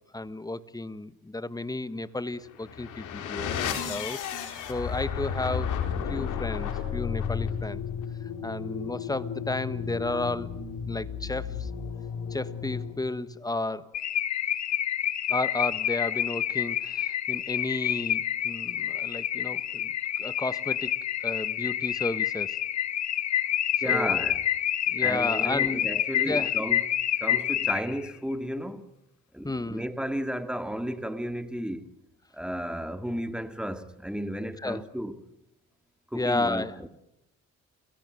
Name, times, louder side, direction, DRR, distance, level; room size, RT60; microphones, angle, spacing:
voice 1, 0.1-4.2 4.7-5.8 6.1-7.8 8.2-10.5 10.9-11.7 12.3-13.9 15.3-19.9 20.2-20.9 21.2-22.6 23.8-24.3 24.9-25.8 26.2-26.5 29.4-29.8 34.6-34.8 36.1-36.8, left 2 dB, 10° left, 1.3 m, -32 dB
sound 1, 2.5-13.2, left 7 dB, 85° left, 4.4 m, -33 dB
Car / Alarm, 13.9-28.1, left 11 dB, 65° left, 1.5 m, -28 dB
voice 2, 23.8-24.4 25.0-26.8 27.2-28.9 29.3-31.9 32.3-35.2 36.1-36.9, equal, 5° right, 2.1 m, -33 dB
29.5 x 17.0 x 9.2 m
cardioid pair, 90°, 30 cm